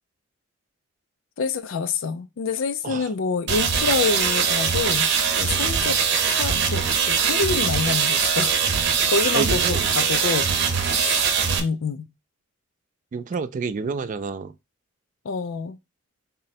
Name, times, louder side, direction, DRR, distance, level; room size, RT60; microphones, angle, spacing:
voice 1, 1.4-5.1 5.3-6.0 6.3-8.7 9.1-10.5 10.8-11.3 11.6-12.1 15.2-15.8, left 5 dB, 80° left, 0.4 m, -27 dB
sound 1, 3.5-11.6, right 6 dB, 60° right, 0.7 m, -22 dB
voice 2, 9.3-9.9 13.1-14.6, right 4 dB, 40° right, 0.3 m, -29 dB
3.7 x 2.1 x 4.1 m
head